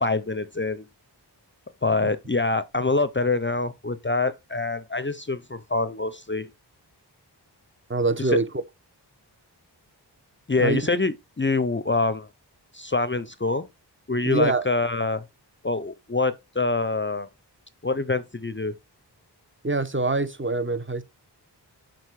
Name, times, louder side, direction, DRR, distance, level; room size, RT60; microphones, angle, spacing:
voice 1, 0.0-0.9 1.8-6.5 8.2-8.4 10.5-12.3 12.7-13.7 14.1-15.2 15.6-17.3 17.8-18.8, left 3 dB, 30° left, 0.5 m, -25 dB
voice 2, 7.9-8.5 10.6-10.8 14.2-14.6 19.6-21.0, right 3 dB, 30° right, 0.9 m, -24 dB
6.6 x 3.9 x 4.7 m
wide cardioid pair, 45°, 42 cm